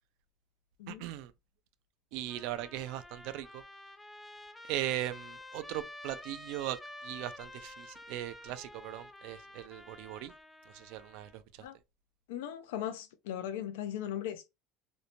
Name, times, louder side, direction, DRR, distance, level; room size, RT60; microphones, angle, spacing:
voice 1, 0.9-1.3 2.1-3.6 4.7-6.8 7.0-10.3 10.7-11.4, right 13 dB, 70° right, 0.3 m, -38 dB
Trumpet, 2.3-11.4, left 1 dB, 10° left, 0.3 m, -50 dB
voice 2, 12.3-14.5, left 10 dB, 90° left, 0.4 m, -38 dB
2.5 x 2.1 x 2.9 m
supercardioid pair, 105°, 0 cm